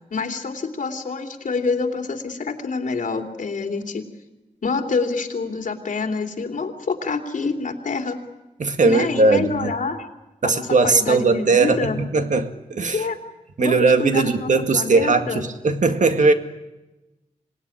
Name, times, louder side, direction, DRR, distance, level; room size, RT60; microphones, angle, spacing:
voice 1, 0.0-4.0 4.6-8.2 8.8-10.0 10.4-12.0 12.9-13.2 13.6-15.4, left 4 dB, 70° left, 3 dB, 3.1 m, -26 dB
voice 2, 8.6-9.7 10.4-13.1 13.6-16.3, right 3 dB, 65° right, 7 dB, 2.0 m, -19 dB
26.5 x 18.5 x 10.0 m, 1.1 s
wide cardioid pair, 100°, 14 cm